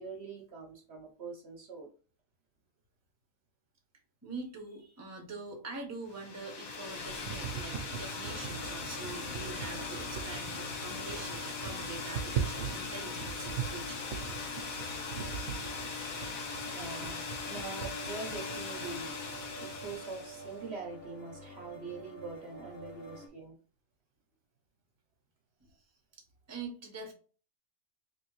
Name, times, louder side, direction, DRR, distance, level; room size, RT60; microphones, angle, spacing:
voice 1, 0.0-1.9 16.6-19.2 19.6-23.6, right 4 dB, 55° right, 1 dB, 0.9 m, -43 dB
voice 2, 4.2-14.0 25.6-25.7 26.5-27.1, right 3 dB, 15° right, 1 dB, 0.7 m, -44 dB
sound 1, 6.1-20.6, left 5 dB, 85° left, 1.3 m, -40 dB
sound 2, 6.7-19.9, right 8 dB, 90° right, 1.1 m, -42 dB
sound 3, 8.2-23.3, equal, 55° left, 1.0 m, -49 dB
3.4 x 3.0 x 3.1 m, 0.38 s
omnidirectional pair, 1.4 m